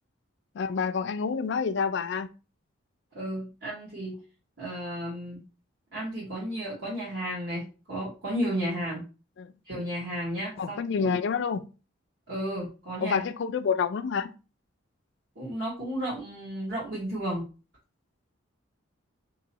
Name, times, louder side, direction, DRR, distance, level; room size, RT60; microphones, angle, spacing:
voice 1, 0.5-2.3 9.4-9.5 10.6-11.6 13.0-14.3, left 6 dB, 60° left, 0.3 m, -28 dB
voice 2, 3.1-4.2 4.6-5.4 5.9-9.0 9.6-11.1 12.3-13.2 15.3-17.5, equal, 55° right, 1.4 m, -33 dB
4.0 x 3.0 x 2.8 m
head